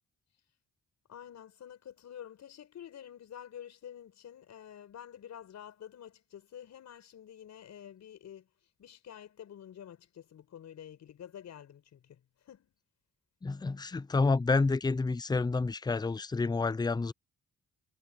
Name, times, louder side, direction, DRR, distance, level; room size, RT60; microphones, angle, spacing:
voice 1, 1.1-8.5 8.8-12.7, left 9 dB, 65° left, 6.2 m, -49 dB
voice 2, 13.4-17.1, left 3 dB, 15° left, 0.6 m, -29 dB
cardioid pair, 90°, 30 cm